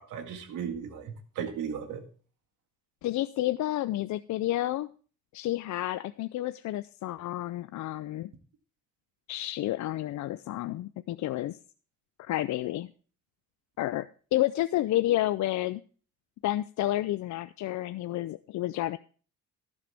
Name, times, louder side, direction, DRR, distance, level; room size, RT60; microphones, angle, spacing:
voice 1, 0.0-2.0, right 7 dB, 90° right, 6 dB, 1.9 m, -36 dB
voice 2, 3.0-4.9 5.3-8.3 9.3-11.6 12.2-12.9 13.8-15.8 16.4-19.0, left 15 dB, 70° left, 13 dB, 0.5 m, -30 dB
12.0 x 10.5 x 3.4 m, 0.40 s
cardioid pair, 90°, 30 cm